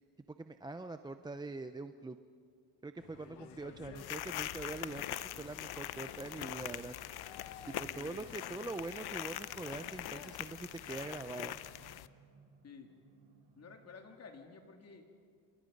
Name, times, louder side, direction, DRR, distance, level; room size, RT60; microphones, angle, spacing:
voice 1, 0.4-2.2 2.8-5.0 5.4-6.9 7.8-11.6, right 3 dB, 10° right, 9 dB, 0.5 m, -43 dB
sound 1, 3.0-10.5, left 7 dB, 75° left, 2.0 m, -54 dB
voice 2, 3.2-4.0 7.9-8.8 12.6-12.9 13.6-15.1, left 5 dB, 35° left, 3 dB, 2.9 m, -53 dB
sound 2, 3.9-12.1, left 13 dB, 60° left, 0.8 m, -43 dB
sound 3, 5.5-14.4, right 6 dB, 65° right, 4.2 m, -67 dB
29.0 x 29.0 x 5.3 m, 2.2 s
cardioid pair, 120°, 43 cm